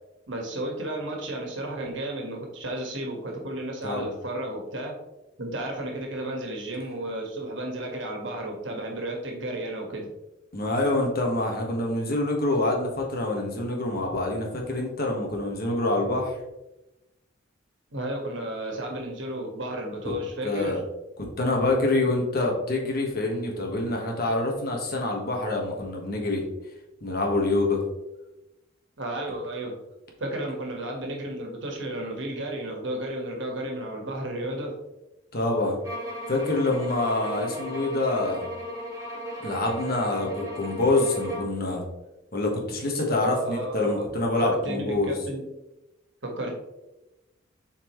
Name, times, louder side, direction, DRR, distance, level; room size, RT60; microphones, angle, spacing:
voice 1, 0.3-5.0 5.4-10.1 17.9-20.8 29.0-29.8 30.2-34.7 43.2-44.1 44.4-45.4 46.2-46.5, right 1 dB, 65° right, 1 dB, 1.6 m, -33 dB
voice 2, 10.5-16.4 20.4-20.8 21.4-26.4 27.0-27.8 35.3-35.8 36.3-38.5 39.4-41.8 42.3-45.1, left 2 dB, 50° left, 0 dB, 1.5 m, -26 dB
sound 1, 35.8-41.6, right 1 dB, 15° right, 1.4 m, -37 dB
7.7 x 4.4 x 3.1 m, 0.96 s
head